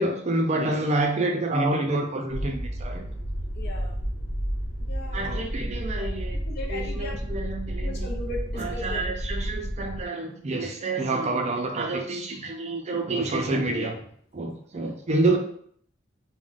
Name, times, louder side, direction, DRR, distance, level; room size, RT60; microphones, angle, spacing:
voice 1, 0.0-3.1 5.1-6.4 6.7-8.1 8.6-14.0 14.3-15.4, right 2 dB, 35° right, 3 dB, 0.4 m, -28 dB
sound 1, 2.3-10.1, equal, 90° left, 0.7 m, -31 dB
voice 2, 3.5-4.0 4.8-5.4 6.0-6.1 6.4-7.2 7.8-9.0 9.4-9.5 14.8-14.9, left 2 dB, 55° left, 0 dB, 0.5 m, -38 dB
2.4 x 2.1 x 3.7 m, 0.63 s
head